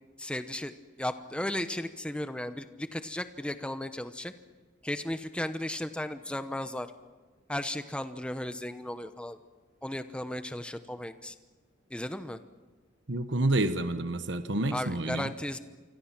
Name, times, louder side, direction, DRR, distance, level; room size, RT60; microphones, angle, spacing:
voice 1, 0.2-0.7 1.0-4.3 4.8-6.9 7.5-9.4 9.8-11.3 11.9-12.4 14.7-15.6, left 1 dB, 5° left, 10 dB, 0.8 m, -35 dB
voice 2, 13.1-15.3, right 2 dB, 65° right, 9 dB, 1.2 m, -29 dB
28.0 x 25.0 x 6.0 m, 1.4 s
head